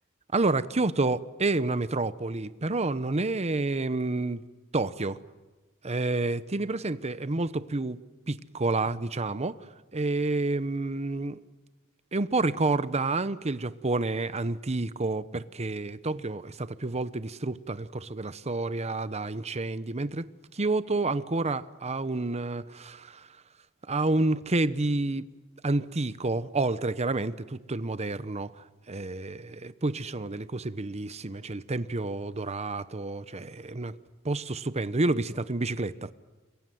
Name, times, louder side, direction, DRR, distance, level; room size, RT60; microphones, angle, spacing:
voice 1, 0.3-4.4 4.7-5.2 5.8-8.0 8.3-9.5 9.9-11.4 12.1-23.3 23.9-25.3 25.6-34.0 34.2-36.1, right 2 dB, 30° right, 0.9 m, -29 dB
27.5 x 23.0 x 9.3 m
head